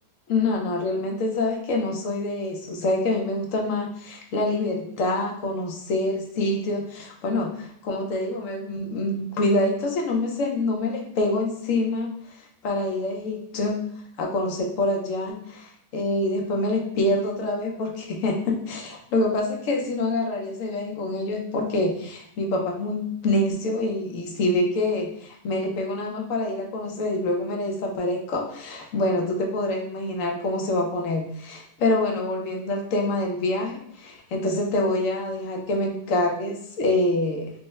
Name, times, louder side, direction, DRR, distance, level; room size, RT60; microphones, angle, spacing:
voice 1, 0.3-12.2 12.6-13.8 14.2-37.5, left 2 dB, 70° left, 1 dB, 0.7 m, -26 dB
3.3 x 2.0 x 3.0 m, 0.69 s
omnidirectional pair, 1.8 m